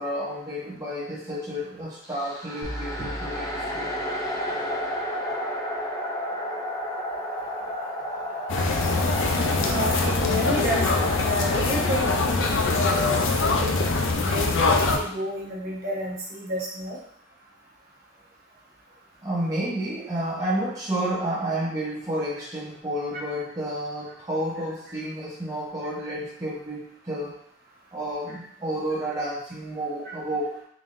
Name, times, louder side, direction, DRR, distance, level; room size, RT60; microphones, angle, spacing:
voice 1, 0.0-3.9 19.2-27.4 27.9-30.6, right 1 dB, 15° right, -8 dB, 0.7 m, -30 dB
sound 1, 2.0-12.5, equal, 15° left, 0.5 m, -32 dB
sound 2, 2.6-4.7, right 1 dB, 70° right, 0.7 m, -39 dB
sound 3, 8.5-15.0, left 3 dB, 65° left, 0.5 m, -23 dB
voice 2, 9.6-13.2 13.4-17.0 28.3-28.4, equal, 45° right, -5 dB, 1.0 m, -31 dB
3.9 x 3.4 x 2.5 m, 0.65 s
head